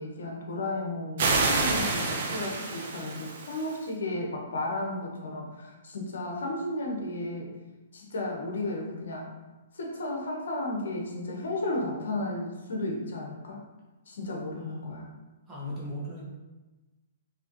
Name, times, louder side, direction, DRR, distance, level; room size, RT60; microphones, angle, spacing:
voice 1, 0.0-7.5 7.9-9.3 9.7-13.6 14.1-15.1, left 2 dB, 75° left, 0 dB, 1.2 m, -33 dB
sound 1, 1.2-3.8, right 3 dB, 55° right, 0.9 m, -28 dB
voice 2, 15.5-16.2, left 1 dB, 15° right, -7 dB, 1.3 m, -37 dB
4.8 x 3.2 x 3.1 m, 1.1 s
hypercardioid pair, 135°, 0 cm